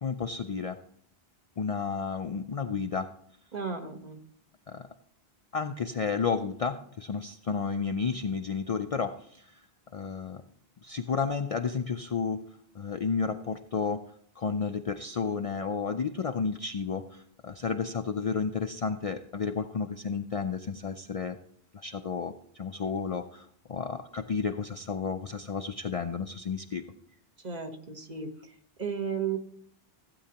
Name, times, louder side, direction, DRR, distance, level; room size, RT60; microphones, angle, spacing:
voice 1, 0.0-0.8 1.6-3.1 4.7-4.9 5.5-9.5 9.9-10.4 10.8-12.4 12.8-14.0 14.4-21.4 21.7-26.8, left 5 dB, 50° left, 7 dB, 0.4 m, -32 dB
voice 2, 3.5-4.2 27.4-28.3 28.8-29.4, right 6 dB, 45° right, 3 dB, 1.2 m, -33 dB
16.0 x 8.5 x 2.9 m, 0.64 s
omnidirectional pair, 1.0 m